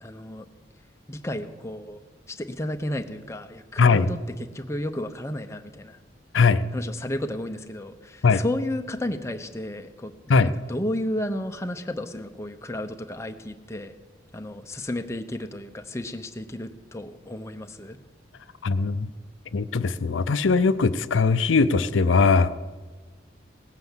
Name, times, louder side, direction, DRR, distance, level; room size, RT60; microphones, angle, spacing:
voice 1, 0.0-0.5 1.1-2.0 2.3-4.2 4.5-6.0 6.7-10.1 10.4-13.9 14.3-18.0, left 1 dB, 15° left, 6 dB, 0.7 m, -32 dB
voice 2, 18.6-19.1 19.5-22.6, left 4 dB, 80° left, 13 dB, 0.6 m, -20 dB
17.5 x 9.6 x 7.3 m, 1.3 s
head